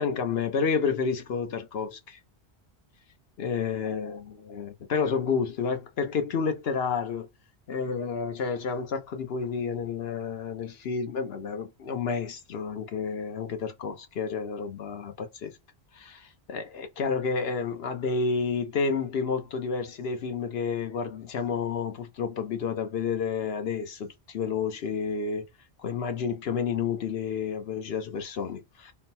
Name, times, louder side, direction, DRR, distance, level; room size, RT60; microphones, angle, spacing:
voice 1, 0.0-2.2 3.4-4.2 4.5-7.3 7.7-15.5 15.9-25.5 25.8-28.9, left 5 dB, 70° left, 1.0 m, -30 dB
3.8 x 2.1 x 4.1 m
omnidirectional pair, 1.1 m